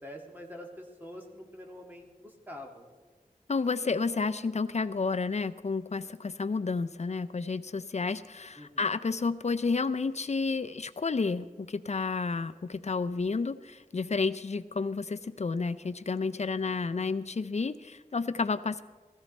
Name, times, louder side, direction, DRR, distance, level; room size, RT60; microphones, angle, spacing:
voice 1, 0.0-2.9 8.6-8.9 16.6-16.9, left 1 dB, 15° right, 0 dB, 2.1 m, -46 dB
voice 2, 3.5-18.8, left 4 dB, 50° left, 14 dB, 0.5 m, -31 dB
16.5 x 15.0 x 4.2 m, 1.4 s
wide cardioid pair, 75°, 14 cm